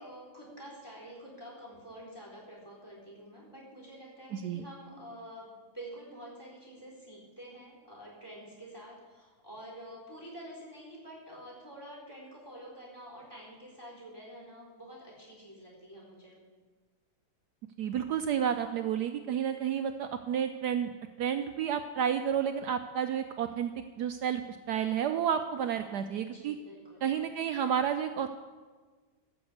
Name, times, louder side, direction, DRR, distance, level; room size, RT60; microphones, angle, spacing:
voice 1, 0.0-16.4 26.2-27.1, right 1 dB, 10° left, -3 dB, 3.7 m, -48 dB
voice 2, 4.3-4.6 17.8-20.9 21.2-23.7 24.0-24.4 24.7-26.5 27.0-28.3, right 8 dB, 75° right, 8 dB, 1.0 m, -31 dB
12.5 x 6.2 x 8.2 m, 1.4 s
omnidirectional pair, 2.2 m